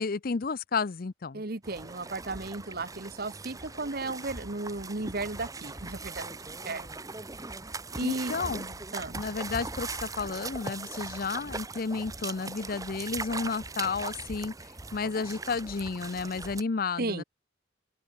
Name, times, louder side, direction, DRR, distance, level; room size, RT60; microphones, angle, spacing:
voice 1, 0.0-1.4 8.0-8.7 9.1-14.5 14.9-17.2, left 4 dB, 50° left, 0.5 m, -32 dB
voice 2, 1.3-6.9 7.9-8.4 8.9-9.2 17.0-17.2, right 2 dB, 50° right, 1.3 m, -35 dB
sound 1, 1.6-16.6, right 3 dB, 20° right, 1.2 m, -40 dB
open air
head